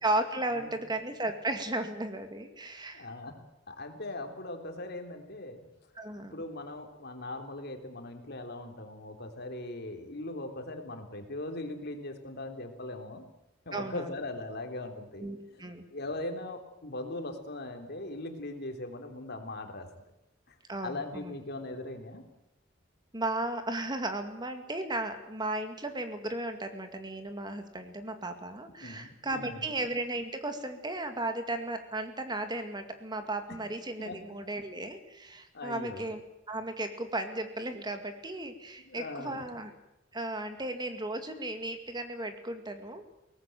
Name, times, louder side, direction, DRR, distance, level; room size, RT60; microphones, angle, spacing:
voice 1, 0.0-3.1 6.0-6.3 13.7-14.1 15.2-15.8 20.7-21.3 23.1-36.2 36.5-39.7 40.1-43.0, right 2 dB, 25° right, 7 dB, 2.1 m, -35 dB
voice 2, 2.9-3.4 3.7-5.6 6.3-13.2 13.6-15.6 15.9-19.9 20.5-20.6 20.8-22.2 28.8-29.7 34.0-34.4 35.5-36.0 38.8-39.4, left 2 dB, 60° left, 5 dB, 3.4 m, -40 dB
22.5 x 18.5 x 9.0 m, 0.89 s
head